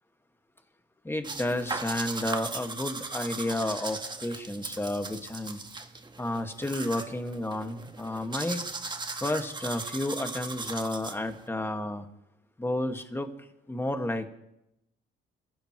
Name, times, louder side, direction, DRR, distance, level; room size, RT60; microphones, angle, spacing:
voice 1, 1.0-5.6 6.2-8.6 9.2-12.0 12.6-13.3 13.7-14.3, left 1 dB, 10° left, 2.0 m, -31 dB
sound 1, 1.2-11.5, right 3 dB, 20° right, 1.5 m, -38 dB
27.5 x 16.0 x 3.2 m
cardioid pair, 90°, 20 cm